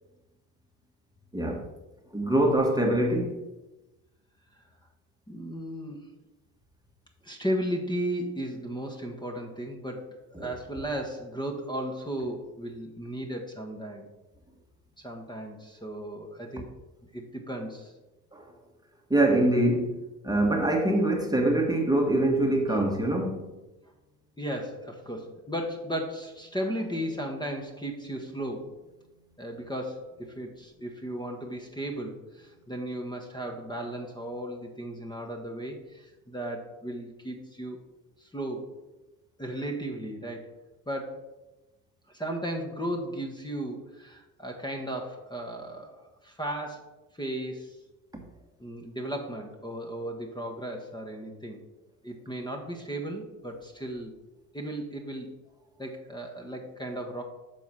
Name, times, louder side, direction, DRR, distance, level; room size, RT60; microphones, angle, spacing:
voice 1, 2.1-3.4 10.4-10.5 18.3-18.4 19.1-20.0 20.2-23.5, right 1 dB, 10° right, 1 dB, 1.4 m, -24 dB
voice 2, 5.3-6.1 7.2-14.1 15.0-16.7 17.1-17.9 22.7-22.8 24.4-28.7 29.4-37.8 38.2-38.7 39.4-40.5 40.8-41.2 42.1-47.8 48.6-51.6 52.0-54.1 54.5-55.4 55.8-57.2, right 1 dB, 10° left, 2 dB, 1.4 m, -35 dB
6.9 x 4.3 x 6.1 m, 1.0 s
supercardioid pair, 70°, 39 cm